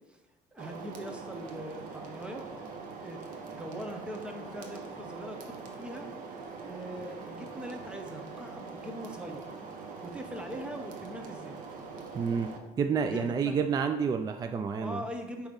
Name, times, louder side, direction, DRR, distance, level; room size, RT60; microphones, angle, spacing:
voice 1, 0.5-2.5 3.0-3.2 3.5-6.1 6.6-9.4 10.0-11.6 13.0-13.6 14.8-15.5, equal, 5° right, 3 dB, 1.0 m, -41 dB
sound 1, 0.6-12.6, right 4 dB, 65° right, 1.1 m, -43 dB
voice 2, 12.1-12.5 12.8-15.0, right 6 dB, 25° right, 6 dB, 0.4 m, -29 dB
8.8 x 3.1 x 5.3 m, 0.99 s
cardioid pair, 130°, 15 cm